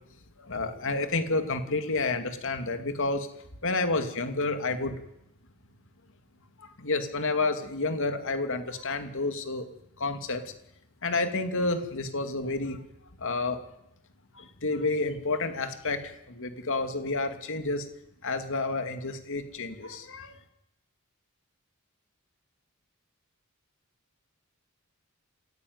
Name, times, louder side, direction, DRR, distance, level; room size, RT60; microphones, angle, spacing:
voice 1, 0.4-3.3 3.6-5.0 6.6-9.6 10.0-10.5 11.0-12.8 13.2-13.6 14.3-17.9 18.2-20.4, left 3 dB, 60° left, 8 dB, 2.6 m, -30 dB
27.5 x 16.0 x 9.6 m, 0.85 s
head